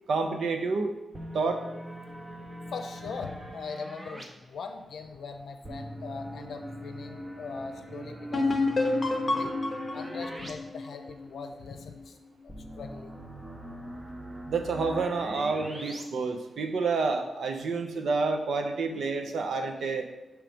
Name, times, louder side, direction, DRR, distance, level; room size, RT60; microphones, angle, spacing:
voice 1, 0.1-0.9 1.3-1.6 14.5-20.1, right 4 dB, 80° right, 5 dB, 0.7 m, -29 dB
warpdrive-short-edit, 1.1-4.2 5.6-10.5 10.8-10.9 12.5-16.0, equal, 15° right, 0.7 m, -41 dB
voice 2, 2.7-8.5 9.3-9.5 9.9-12.2 12.8-13.1, left 5 dB, 75° left, 6 dB, 0.6 m, -40 dB
sound 1, 8.3-11.9, left 2 dB, 30° left, 0.7 m, -29 dB
6.2 x 3.2 x 5.0 m, 1.0 s
wide cardioid pair, 170°, 0 cm